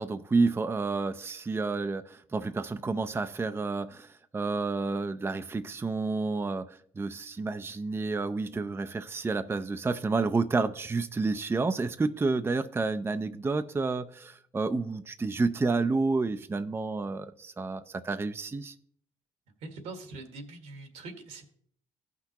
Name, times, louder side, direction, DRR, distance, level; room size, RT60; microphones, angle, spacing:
voice 1, 0.0-18.7, right 3 dB, 20° right, 0.5 m, -30 dB
voice 2, 19.6-21.5, right 3 dB, 75° right, 1.7 m, -43 dB
15.5 x 5.9 x 2.9 m
supercardioid pair, 60°, 12 cm